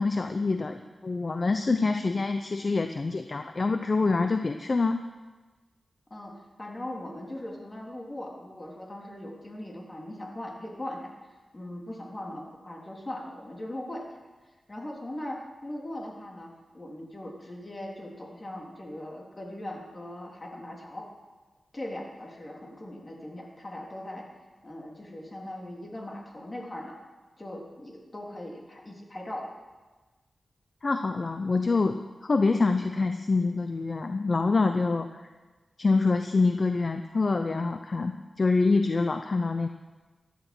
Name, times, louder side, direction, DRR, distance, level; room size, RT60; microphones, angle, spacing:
voice 1, 0.0-5.0 30.8-35.1 35.8-39.7, left 3 dB, 45° left, 7 dB, 0.7 m, -26 dB
voice 2, 6.1-11.0 11.5-14.0 14.7-21.1 21.7-24.3 24.6-27.0 27.4-29.5, left 1 dB, 30° left, -1 dB, 3.6 m, -39 dB
15.5 x 12.0 x 6.2 m, 1.2 s
wide cardioid pair, 80°, 0 cm